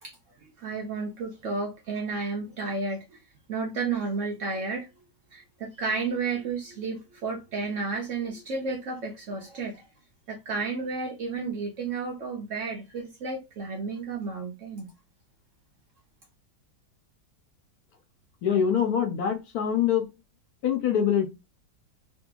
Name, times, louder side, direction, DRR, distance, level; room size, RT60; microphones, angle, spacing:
voice 1, 0.0-3.2 3.5-4.9 5.3-9.9 10.3-14.9, right 4 dB, 85° right, 0.6 m, -32 dB
voice 2, 18.4-20.1 20.6-21.3, left 8 dB, 70° left, 1.0 m, -24 dB
2.7 x 2.7 x 2.2 m
omnidirectional pair, 2.0 m